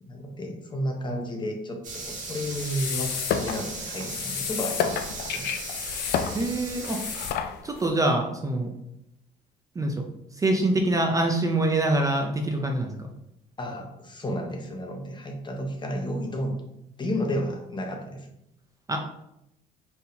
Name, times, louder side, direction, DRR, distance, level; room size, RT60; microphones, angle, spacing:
voice 1, 0.0-5.5 13.6-16.5 17.0-18.3, equal, 25° left, 3 dB, 0.8 m, -32 dB
sound 1, 1.8-7.3, right 3 dB, 50° right, 1.5 m, -37 dB
sound 2, 2.5-7.9, left 8 dB, 75° left, 0.4 m, -31 dB
voice 2, 6.3-7.0 7.6-8.7 9.8-10.1 10.3-12.9 18.9-19.0, right 2 dB, 20° right, 2 dB, 0.5 m, -25 dB
4.4 x 3.5 x 2.7 m, 0.81 s
cardioid pair, 110°, 17 cm